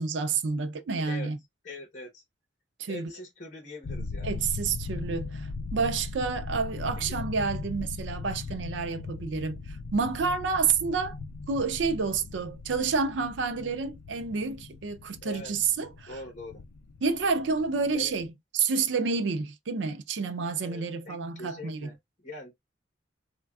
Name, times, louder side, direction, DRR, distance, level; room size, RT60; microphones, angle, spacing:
voice 1, 0.0-1.4 2.8-3.1 4.2-9.6 9.9-11.2 11.5-16.1 17.0-18.3 18.5-21.9, right 5 dB, 80° right, 0.5 m, -29 dB
voice 2, 1.6-2.2 2.9-4.3 7.0-7.2 15.2-15.5 16.1-16.6 17.9-18.1 20.6-22.5, left 2 dB, 40° left, 1.0 m, -42 dB
sound 1, 3.8-18.3, left 3 dB, 80° left, 0.4 m, -39 dB
3.3 x 2.2 x 2.3 m
head